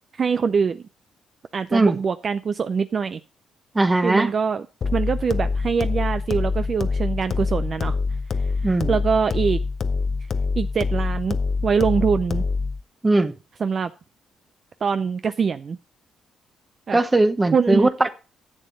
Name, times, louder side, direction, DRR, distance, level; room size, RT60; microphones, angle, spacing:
voice 1, 0.1-0.8 1.5-3.2 4.0-4.7 4.9-8.0 8.9-9.6 10.6-12.4 13.6-13.9 14.8-15.8 16.9-17.0 17.5-17.9, right 6 dB, 45° right, 0.4 m, -23 dB
voice 2, 3.7-4.3 8.6-9.0 13.0-13.3 16.9-18.1, right 2 dB, 20° right, 1.0 m, -19 dB
sound 1, 4.8-12.8, left 4 dB, 45° left, 0.8 m, -25 dB
10.5 x 7.6 x 3.9 m
cardioid pair, 90°, 0 cm